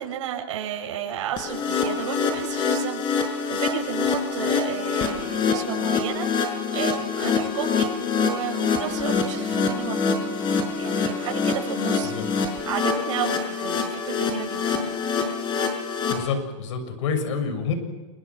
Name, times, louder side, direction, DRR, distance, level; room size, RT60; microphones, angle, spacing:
voice 1, 0.0-12.1 12.4-14.9, right 9 dB, 70° right, 2 dB, 7.6 m, -33 dB
sound 1, 1.4-16.1, left 5 dB, 30° left, 5.8 m, -25 dB
voice 2, 16.1-17.7, left 5 dB, 70° left, 8 dB, 6.8 m, -27 dB
28.5 x 25.0 x 6.2 m, 1.2 s
supercardioid pair, 140°, 16 cm